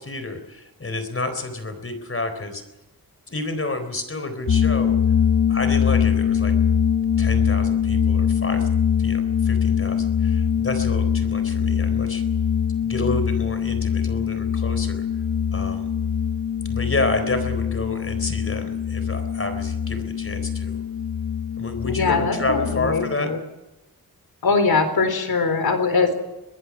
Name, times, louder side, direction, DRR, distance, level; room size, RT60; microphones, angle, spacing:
voice 1, 0.0-2.6 3.3-5.0 5.5-6.5 7.2-8.7 9.0-12.2 12.8-15.1 15.5-15.9 16.7-20.8 21.6-23.3, left 2 dB, 35° left, 8 dB, 4.0 m, -29 dB
sound 1, 4.5-23.1, left 8 dB, 60° left, 1.3 m, -23 dB
voice 2, 21.8-23.4 24.4-26.1, left 4 dB, 75° left, 8 dB, 4.1 m, -21 dB
23.0 x 20.5 x 6.2 m, 1.0 s
wide cardioid pair, 100°, 37 cm